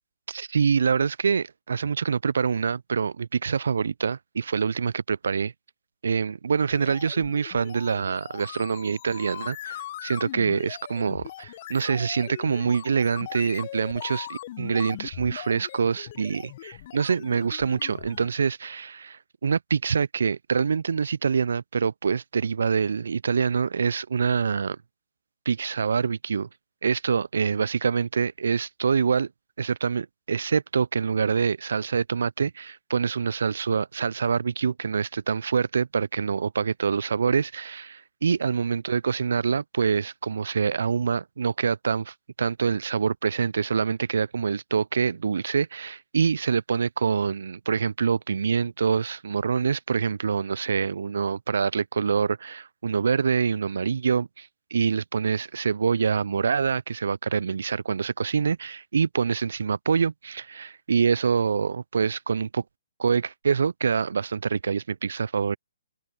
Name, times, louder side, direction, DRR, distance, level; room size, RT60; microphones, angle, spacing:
voice 1, 0.3-5.5 6.0-24.8 25.5-26.5 26.8-29.3 29.6-62.6 63.0-65.6, right 6 dB, 65° right, 0.5 m, -25 dB
sound 1, 6.7-18.3, left 14 dB, 40° left, 1.0 m, -40 dB
figure-of-eight pair, 135°, 0 cm